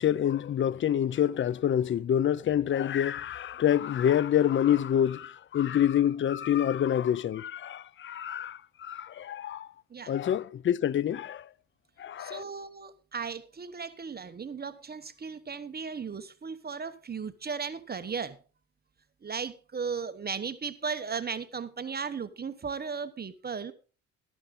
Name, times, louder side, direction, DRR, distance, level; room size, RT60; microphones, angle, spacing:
voice 1, 0.0-9.7 10.1-11.5 12.0-12.4, left 10 dB, 40° left, 0.5 m, -27 dB
voice 2, 12.2-18.4 19.2-23.7, right 5 dB, 30° right, 1.1 m, -36 dB
14.0 x 11.0 x 3.8 m
cardioid pair, 90°, 30 cm